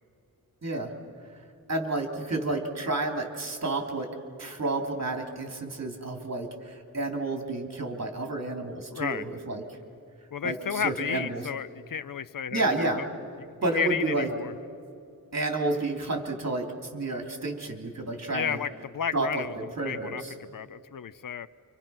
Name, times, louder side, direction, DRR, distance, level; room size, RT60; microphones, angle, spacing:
voice 1, 1.7-4.1 4.4-9.8 10.4-11.4 12.5-13.0 13.6-14.3 15.3-18.6 19.1-20.3, right 2 dB, 45° right, 3 dB, 3.2 m, -30 dB
voice 2, 8.9-9.2 10.3-13.1 13.4-13.5 13.7-14.5 18.3-19.6 19.8-21.5, left 7 dB, 65° left, 16 dB, 0.6 m, -32 dB
29.0 x 26.0 x 6.0 m, 2.4 s
wide cardioid pair, 95°, 36 cm